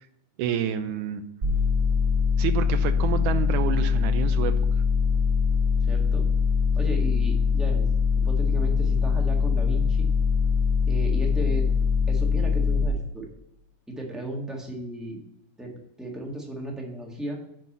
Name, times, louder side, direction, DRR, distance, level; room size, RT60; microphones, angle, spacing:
voice 1, 0.4-1.2 2.4-4.5, right 9 dB, 80° right, 9 dB, 2.2 m, -28 dB
sound 1, 1.4-12.9, left 5 dB, 40° right, 1.3 m, -22 dB
voice 2, 5.8-6.3 6.8-7.9 8.2-10.1 10.9-11.7 12.1-13.3 13.9-15.2 15.6-15.7 16.0-17.4, right 1 dB, ahead, -1 dB, 0.7 m, -35 dB
7.8 x 5.8 x 7.4 m, 0.77 s
omnidirectional pair, 3.6 m